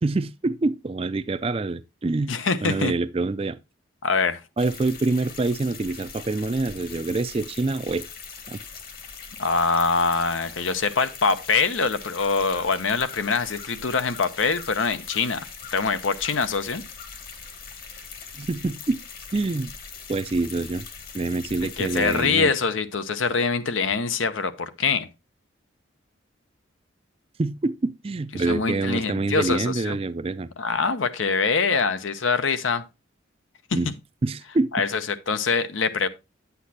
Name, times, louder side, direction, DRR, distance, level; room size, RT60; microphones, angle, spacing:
voice 1, 0.0-2.3 2.6-3.6 4.6-8.0 8.5-8.6 18.4-19.0 19.3-19.7 20.1-20.8 21.1-22.5 27.4-30.5 33.7-33.9 34.2-34.7, right 3 dB, 30° right, 0.4 m, -26 dB
voice 2, 2.3-2.9 4.0-4.4 9.4-15.5 15.7-16.8 21.8-25.1 28.3-30.0 30.6-32.8 34.7-36.1, left 4 dB, 85° left, 0.8 m, -24 dB
sound 1, 4.6-22.3, left 5 dB, 50° left, 1.4 m, -41 dB
9.5 x 8.2 x 2.8 m
head